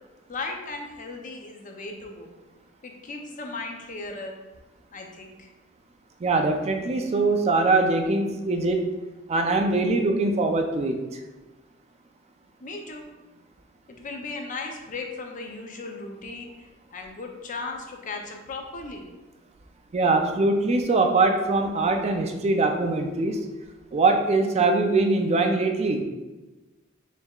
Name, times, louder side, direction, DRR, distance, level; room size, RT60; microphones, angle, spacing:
voice 1, 0.3-2.3 2.8-4.3 4.9-5.5 12.6-13.0 13.9-16.5 16.9-19.1, left 3 dB, 40° left, 2 dB, 0.5 m, -36 dB
voice 2, 6.2-8.9 9.3-11.2 19.9-23.5 23.9-26.0, right 3 dB, 30° right, 5 dB, 0.3 m, -22 dB
4.5 x 3.4 x 2.3 m, 1.1 s
head